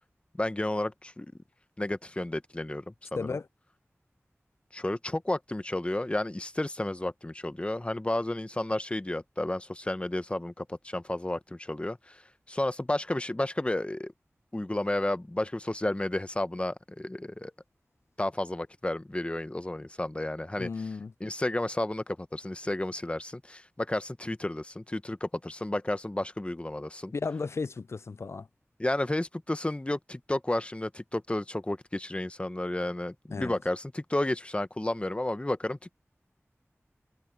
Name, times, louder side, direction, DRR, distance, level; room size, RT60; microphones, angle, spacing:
voice 1, 0.4-1.3 1.8-3.3 4.7-12.2 12.5-14.1 14.5-17.5 18.2-20.7 21.2-27.1 28.8-35.9, left 1 dB, 25° left, 0.9 m, -32 dB
voice 2, 3.2-3.5 20.6-21.1 27.1-28.5 33.3-33.6, left 4 dB, 65° left, 0.3 m, -34 dB
wide cardioid pair, 70°, 5 cm